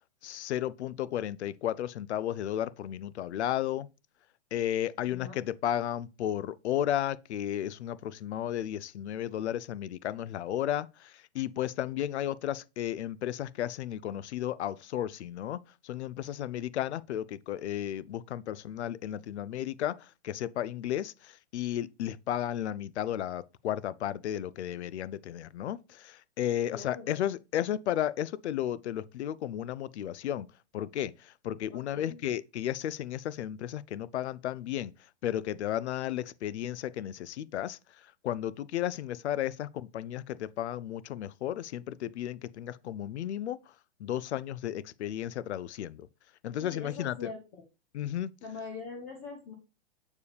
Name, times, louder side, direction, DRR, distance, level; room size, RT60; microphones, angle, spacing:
voice 1, 0.2-3.9 4.5-30.5 30.7-34.9 35.2-43.6 44.0-46.1 46.4-47.3 47.9-48.3, left 11 dB, 85° left, 0.5 m, -33 dB
voice 2, 5.0-5.4 26.7-27.2 31.7-32.2 46.6-47.6 48.4-49.5, left 4 dB, 15° left, 0.3 m, -43 dB
6.8 x 4.7 x 3.3 m
hypercardioid pair, 155°, 33 cm